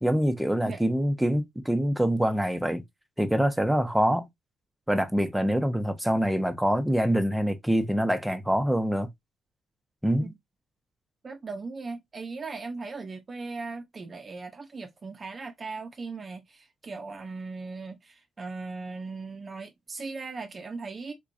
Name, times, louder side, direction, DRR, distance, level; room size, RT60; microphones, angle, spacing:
voice 1, 0.0-2.8 3.2-4.3 4.9-9.1 10.0-10.3, equal, 5° right, 0.8 m, -25 dB
voice 2, 11.2-21.1, right 4 dB, 35° right, 0.6 m, -38 dB
3.7 x 2.9 x 2.5 m
cardioid pair, 90°, 0 cm